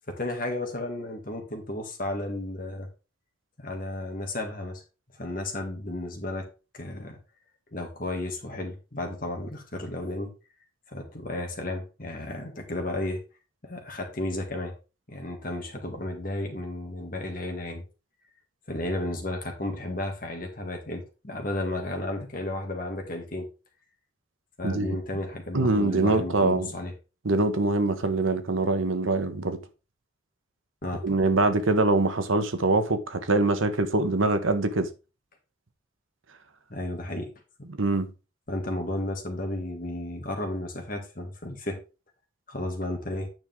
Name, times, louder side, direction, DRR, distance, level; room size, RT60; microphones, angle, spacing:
voice 1, 0.1-2.9 3.6-4.8 5.1-6.5 6.7-7.2 7.7-10.3 10.9-13.2 13.6-14.7 15.1-17.8 18.7-23.5 24.6-26.9 30.8-31.1 36.7-37.3 38.5-41.8 42.5-43.3, left 1 dB, 45° left, 2.1 m, -33 dB
voice 2, 24.6-25.0 25.5-26.7 27.2-29.6 31.0-34.9 37.7-38.1, right 2 dB, 85° right, 1.2 m, -24 dB
9.4 x 5.3 x 3.6 m
head